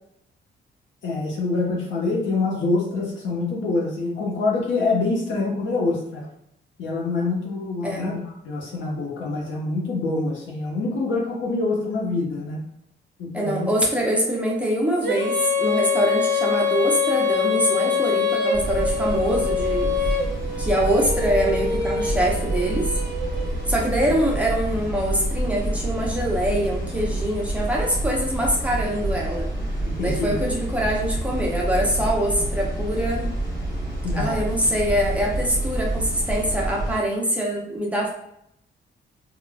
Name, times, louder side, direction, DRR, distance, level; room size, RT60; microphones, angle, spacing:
voice 1, 1.0-6.3 6.8-12.6 13.2-13.7 29.8-30.3 34.0-34.4, left 3 dB, 80° left, -2 dB, 0.9 m, -25 dB
voice 2, 13.3-19.9 20.6-22.9 23.7-29.5 30.0-33.3 34.2-38.1, equal, 5° right, -3 dB, 0.6 m, -24 dB
Female singing, 15.0-23.8, left 5 dB, 65° right, 0.7 m, -25 dB
sound 1, 18.5-37.0, right 1 dB, 15° left, 1.4 m, -28 dB
3.8 x 2.3 x 2.2 m, 0.76 s
cardioid pair, 140°, 19 cm